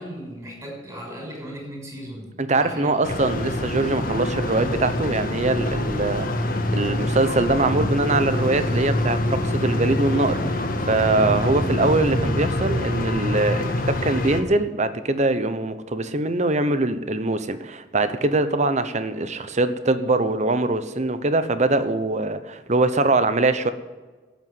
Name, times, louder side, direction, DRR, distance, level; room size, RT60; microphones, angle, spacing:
voice 1, 0.0-2.9, equal, 20° right, 6.1 m, -37 dB
voice 2, 2.4-23.7, right 2 dB, 40° right, 0.9 m, -23 dB
sound 1, 3.0-14.4, left 1 dB, 50° left, 1.6 m, -25 dB
13.0 x 8.7 x 9.3 m
head